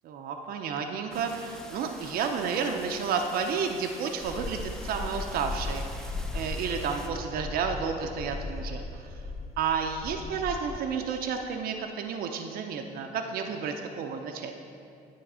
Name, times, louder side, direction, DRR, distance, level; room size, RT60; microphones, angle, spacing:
voice 1, 0.0-9.2 9.6-14.5, right 6 dB, 65° right, 4 dB, 0.5 m, -31 dB
sound 1, 1.1-7.1, equal, 5° left, 0.5 m, -46 dB
sound 2, 4.2-10.9, left 3 dB, 40° left, 1.6 m, -37 dB
9.3 x 3.2 x 5.5 m, 2.6 s
cardioid pair, 110°, 17 cm